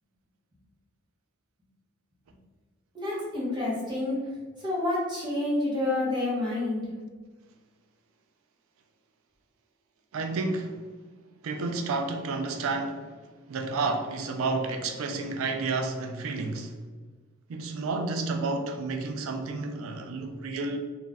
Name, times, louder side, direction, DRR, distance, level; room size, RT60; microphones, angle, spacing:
voice 1, 2.9-4.2 4.6-6.9, left 2 dB, 20° right, 0.7 m, -28 dB
voice 2, 10.1-10.8 11.4-13.1 13.5-16.8 17.5-20.8, right 3 dB, 75° right, 0.4 m, -31 dB
2.4 x 2.1 x 3.3 m
head